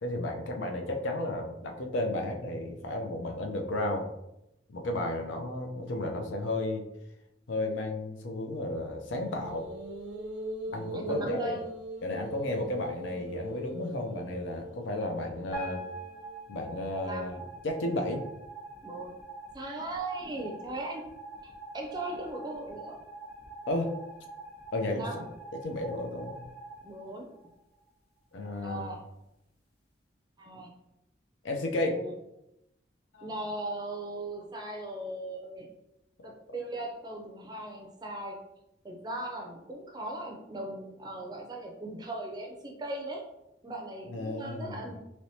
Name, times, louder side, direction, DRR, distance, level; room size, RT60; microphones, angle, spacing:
voice 1, 0.0-4.1 4.7-6.8 7.5-9.6 10.7-11.5 12.0-15.8 16.5-18.2 23.7-23.9 24.7-25.2 25.6-26.4 28.3-28.9 31.4-32.0 33.1-33.3 44.1-44.9, left 1 dB, 80° left, 3 dB, 0.5 m, -33 dB
sound 1, 9.1-16.5, right 1 dB, 80° right, 0.6 m, -41 dB
voice 2, 10.7-11.7 17.0-17.3 18.8-19.2 19.5-21.0 21.7-23.0 24.9-25.3 26.8-27.4 28.6-29.1 30.4-30.8 31.8-32.1 33.2-35.7 36.2-38.4 38.8-43.3 43.6-45.0, right 1 dB, 20° right, 2 dB, 0.4 m, -38 dB
sound 2, 15.5-27.8, right 2 dB, 30° left, 1.1 m, -45 dB
3.3 x 2.9 x 2.7 m, 0.88 s
head